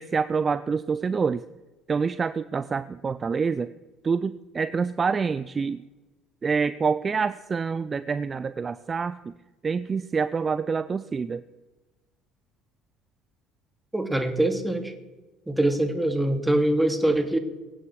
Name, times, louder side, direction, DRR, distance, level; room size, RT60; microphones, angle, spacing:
voice 1, 0.0-1.4 1.9-3.7 4.0-5.8 6.4-9.3 9.6-11.4, right 5 dB, 35° right, 14 dB, 0.6 m, -27 dB
voice 2, 13.9-14.9 15.5-17.4, right 1 dB, 5° right, 5 dB, 2.5 m, -23 dB
23.5 x 8.6 x 4.7 m, 1.1 s
hypercardioid pair, 70°, 0 cm